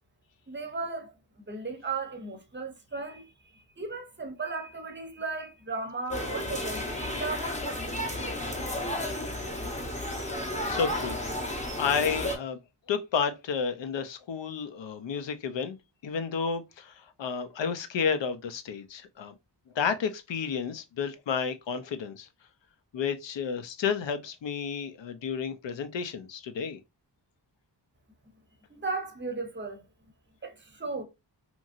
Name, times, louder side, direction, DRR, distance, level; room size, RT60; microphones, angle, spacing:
voice 1, 0.5-8.6 28.7-29.8 30.4-31.0, right 3 dB, 25° right, 0.6 m, -36 dB
sound 1, 6.1-12.4, left 1 dB, 15° left, 0.7 m, -33 dB
voice 2, 10.7-11.2 11.8-12.6 12.9-15.8 16.0-19.3 19.8-22.3 22.9-26.8, left 6 dB, 80° left, 0.6 m, -31 dB
2.9 x 2.6 x 2.4 m
wide cardioid pair, 110°, 44 cm